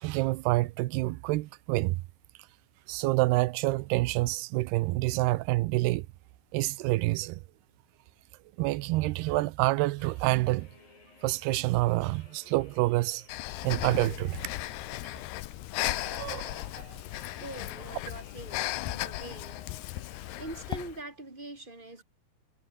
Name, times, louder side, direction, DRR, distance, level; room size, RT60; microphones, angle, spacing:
voice 1, 0.0-2.0 2.9-6.1 6.5-7.4 8.6-10.7 11.2-13.2 13.6-14.4 16.0-16.6, right 19 dB, 85° right, 2.7 m, -27 dB
sound 1, 10.0-21.0, left 4 dB, 60° left, 8.7 m, -58 dB
Breathing, 13.3-21.0, left 16 dB, 85° left, 3.1 m, -36 dB
voice 2, 17.2-19.6 20.4-22.0, right 2 dB, 10° right, 4.3 m, -43 dB
omnidirectional pair, 4.6 m